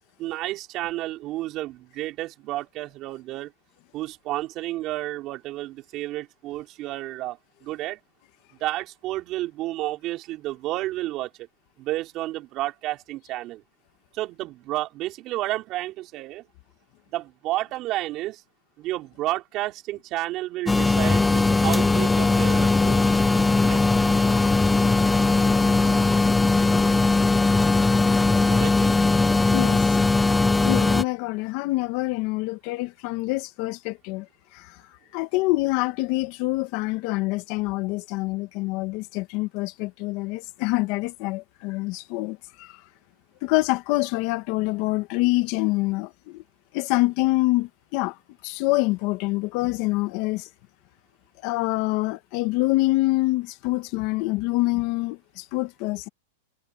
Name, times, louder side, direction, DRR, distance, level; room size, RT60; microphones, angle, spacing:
voice 1, 0.2-3.5 3.9-8.0 8.6-11.3 11.8-13.6 14.1-16.4 17.1-18.4 18.8-23.0 23.6-23.8 28.5-29.0, right 16 dB, 30° right, 4.7 m, -31 dB
sound 1, 20.7-31.0, left 3 dB, 5° left, 0.9 m, -19 dB
voice 2, 30.6-34.3 34.5-34.8 35.1-42.7 43.4-46.4 46.7-48.2 48.4-50.5 51.4-56.1, left 21 dB, 40° left, 1.8 m, -26 dB
supercardioid pair, 160°, 0 cm